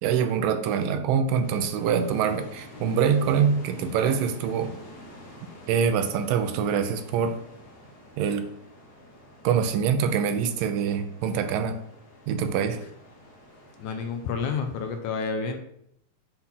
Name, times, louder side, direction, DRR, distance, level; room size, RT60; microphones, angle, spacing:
voice 1, 0.0-4.7 5.7-7.4 8.2-8.5 9.4-11.8 12.3-12.8, right 7 dB, 85° right, 9 dB, 2.4 m, -24 dB
sound 1, 1.4-15.0, left 1 dB, 40° left, 1.6 m, -48 dB
sound 2, 4.7-5.2, right 1 dB, 55° left, 3.1 m, -50 dB
voice 2, 13.8-15.6, left 5 dB, 75° left, 5 dB, 2.2 m, -30 dB
7.7 x 4.3 x 5.7 m, 0.73 s
omnidirectional pair, 3.8 m